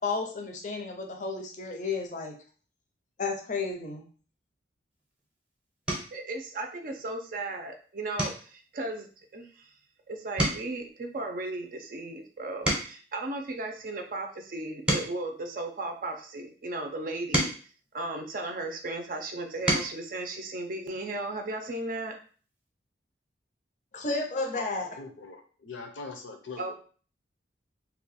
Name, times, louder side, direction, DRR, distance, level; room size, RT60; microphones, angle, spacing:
voice 1, 0.0-2.3 3.2-4.0 23.9-25.0, left 3 dB, 40° left, 2 dB, 0.5 m, -32 dB
sound 1, 5.0-5.3 5.8-6.3 6.8-7.1 7.4-7.6 8.1-10.0 10.2-13.2 13.8-16.3 16.9-18.8 19.3-20.0 21.4-21.5 21.8-22.0, right 1 dB, 5° right, 0.7 m, -33 dB
voice 2, 6.1-9.6 10.1-17.5 17.9-22.1 26.6-26.7, right 2 dB, 45° right, 4 dB, 0.4 m, -36 dB
voice 3, 25.0-26.7, left 4 dB, 85° left, 5 dB, 0.7 m, -41 dB
2.7 x 2.2 x 4.0 m, 0.41 s
head